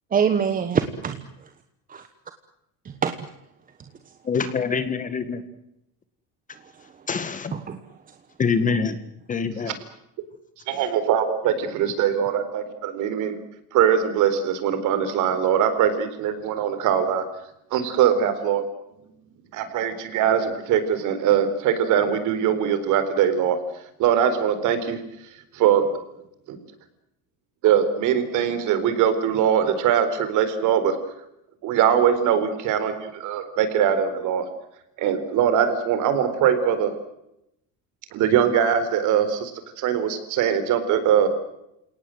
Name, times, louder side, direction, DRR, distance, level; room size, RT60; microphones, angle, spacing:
voice 1, 0.1-1.3 1.9-2.0 3.0-3.3 4.0-4.1 6.6-7.1 7.5-8.1, right 7 dB, 25° right, 1.3 m, -25 dB
voice 2, 4.3-5.4 7.1-7.5 8.4-9.0 9.3-9.8, left 5 dB, 20° left, 1.8 m, -25 dB
voice 3, 10.7-13.4 13.7-17.2 17.7-18.6 19.5-23.6 24.0-25.0 25.5-25.9 26.5-26.6 27.6-31.0 31.6-34.4 35.0-36.9 38.1-39.5 39.8-41.3, right 8 dB, 55° right, 4.2 m, -21 dB
29.0 x 18.5 x 7.9 m
cardioid pair, 160°, 36 cm